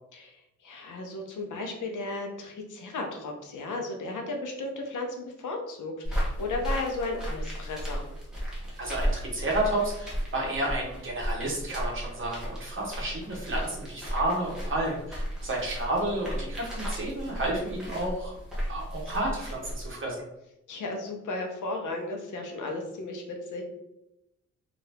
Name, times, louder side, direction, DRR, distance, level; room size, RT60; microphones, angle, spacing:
voice 1, 0.1-8.1 20.7-23.6, left 2 dB, 80° left, 2 dB, 0.7 m, -35 dB
sound 1, 6.0-20.0, equal, ahead, 0.9 m, -34 dB
voice 2, 8.8-18.4 18.7-20.2, right 1 dB, 45° right, -2 dB, 0.9 m, -31 dB
2.8 x 2.5 x 3.3 m, 0.87 s
wide cardioid pair, 180°, 30 cm